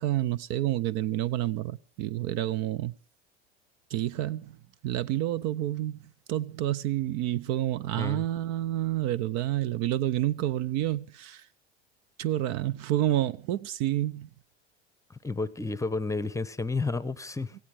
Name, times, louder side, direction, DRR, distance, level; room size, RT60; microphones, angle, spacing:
voice 1, 0.0-2.9 3.9-4.6 4.8-6.0 6.3-11.5 12.2-14.3, right 13 dB, 60° right, 0.7 m, -29 dB
voice 2, 7.9-8.2 15.1-17.6, left 3 dB, 10° left, 0.8 m, -31 dB
17.5 x 16.0 x 4.9 m
hypercardioid pair, 90°, 32 cm